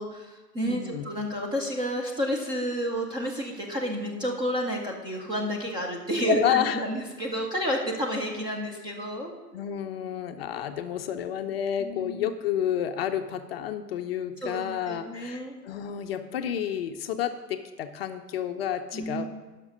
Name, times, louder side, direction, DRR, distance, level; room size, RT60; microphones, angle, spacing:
voice 1, 0.0-9.4 11.8-12.3 14.4-15.6 18.9-19.3, equal, 10° right, -1 dB, 0.5 m, -30 dB
voice 2, 0.6-1.0 6.2-6.8 9.5-19.3, left 10 dB, 40° left, 8 dB, 0.5 m, -30 dB
10.5 x 5.9 x 5.2 m, 1.2 s
hypercardioid pair, 115°, 48 cm